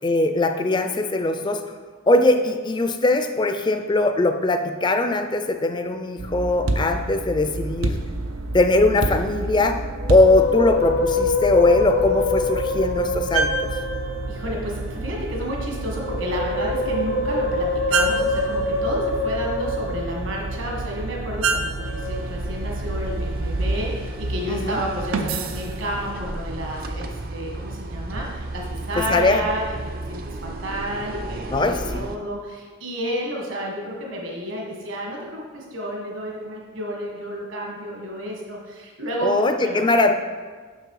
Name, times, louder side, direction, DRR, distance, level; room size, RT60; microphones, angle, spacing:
voice 1, 0.0-1.6 2.1-8.0 8.5-9.8 10.1-13.5 24.5-24.8 29.1-29.4 31.5-32.0 39.2-40.1, left 2 dB, 20° left, 7 dB, 0.4 m, -20 dB
sound 1, 6.2-26.1, right 2 dB, 90° right, 0.6 m, -29 dB
Musical instrument, 9.9-14.5 15.8-20.7 21.8-22.2, left 3 dB, 65° left, 0.6 m, -25 dB
voice 2, 14.3-39.8, equal, 65° right, -1 dB, 1.5 m, -31 dB
sound 2, 22.0-32.2, right 2 dB, 45° right, 0.5 m, -32 dB
6.8 x 6.0 x 4.7 m, 1.5 s
head